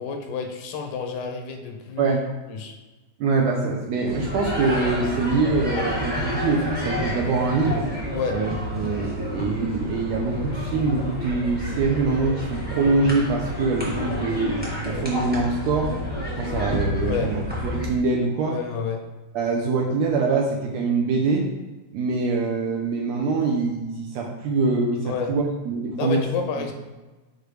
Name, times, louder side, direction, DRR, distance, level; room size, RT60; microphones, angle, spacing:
voice 1, 0.0-2.2 2.5-2.8 8.1-8.4 17.0-17.3 18.5-19.0 25.0-25.3 26.0-26.7, left 5 dB, 80° left, 3 dB, 2.1 m, -29 dB
voice 2, 3.2-7.9 8.3-14.5 14.8-15.9 16.4-18.6 19.3-21.5 21.9-26.2 26.6-26.7, right 4 dB, 75° right, 0 dB, 1.7 m, -24 dB
sound 1, 4.0-17.9, left 1 dB, 10° right, 0.4 m, -29 dB
6.6 x 5.0 x 3.2 m, 1.2 s
omnidirectional pair, 3.4 m